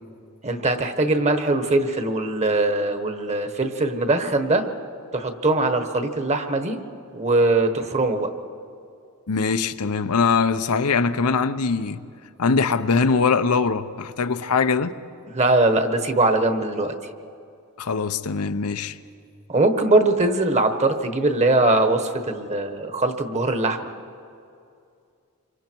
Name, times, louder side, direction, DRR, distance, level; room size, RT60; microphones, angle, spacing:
voice 1, 0.4-4.6 5.1-6.8 7.1-8.3 15.3-16.9 19.5-23.9, right 2 dB, 30° right, 1.3 m, -21 dB
voice 2, 9.3-12.0 12.4-14.9 17.8-19.0, left 5 dB, 85° left, 0.7 m, -22 dB
27.5 x 24.5 x 4.6 m
head